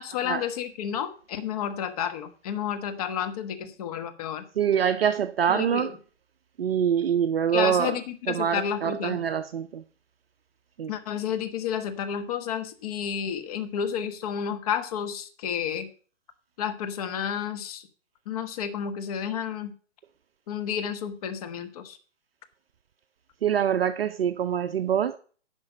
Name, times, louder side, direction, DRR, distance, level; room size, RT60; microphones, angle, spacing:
voice 1, 0.0-4.5 5.5-5.9 7.5-9.2 10.9-15.9 16.6-17.9 18.3-19.7 20.5-22.0, left 8 dB, 30° left, 1.2 m, -31 dB
voice 2, 4.6-5.9 6.6-8.0 8.3-9.8 10.8-10.9 23.4-25.2, right 8 dB, 50° right, 0.6 m, -25 dB
10.5 x 5.9 x 6.4 m
hypercardioid pair, 145°, 37 cm